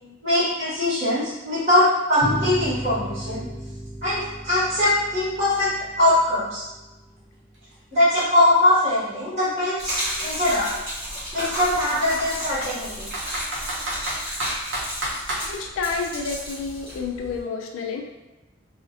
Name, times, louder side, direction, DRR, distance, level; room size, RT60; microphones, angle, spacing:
voice 1, 0.2-3.4 4.0-5.7 6.0-6.6 7.9-10.0 10.2-10.7 11.3-13.1, left 1 dB, 40° right, -14 dB, 1.0 m, -21 dB
sound 1, 2.2-7.3, right 1 dB, 25° left, 0.7 m, -34 dB
Computer keyboard, 7.2-7.3 7.5-9.5 10.3-10.4 10.7-10.8 11.4-12.7 13.1-15.5, right 1 dB, 70° right, 0.7 m, -31 dB
Gurgling / Liquid, 9.8-17.4, equal, 5° left, 1.2 m, -33 dB
voice 2, 15.5-18.0, left 5 dB, 90° left, 2 dB, 0.4 m, -30 dB
2.4 x 2.1 x 2.4 m, 1.1 s
head